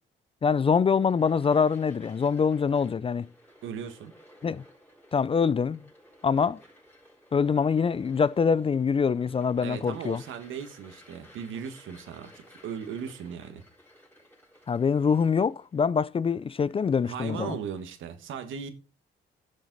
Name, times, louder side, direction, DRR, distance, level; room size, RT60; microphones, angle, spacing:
voice 1, 0.4-3.3 4.4-4.6 5.1-5.8 6.2-6.6 7.3-10.2 14.7-17.6, left 6 dB, 30° left, 0.4 m, -24 dB
sound 1, 0.7-18.0, equal, 10° left, 4.0 m, -56 dB
voice 2, 3.6-4.1 9.6-13.6 17.1-18.7, right 7 dB, 80° right, 1.5 m, -37 dB
10.5 x 7.0 x 4.0 m
cardioid pair, 90°, 20 cm